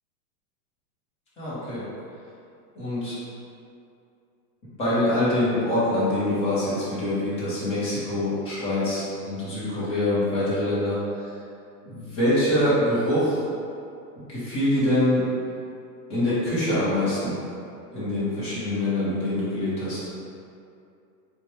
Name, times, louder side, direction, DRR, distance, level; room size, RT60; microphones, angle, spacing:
voice 1, 1.4-1.8 2.7-3.2 4.8-11.0 11.9-13.4 14.3-15.3 16.1-17.3 17.9-20.0, left 1 dB, 10° left, -11 dB, 0.7 m, -24 dB
4.4 x 2.2 x 3.0 m, 2.5 s
hypercardioid pair, 155°, 50 cm